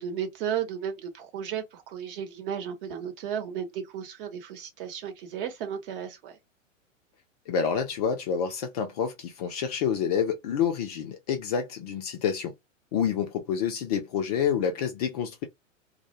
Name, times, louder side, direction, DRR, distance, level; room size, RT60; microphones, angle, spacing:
voice 1, 0.0-6.4, right 8 dB, 45° right, 0.9 m, -34 dB
voice 2, 7.5-12.5 12.9-15.5, left 7 dB, 30° left, 0.4 m, -28 dB
2.1 x 2.1 x 2.8 m
figure-of-eight pair, 105°, 39 cm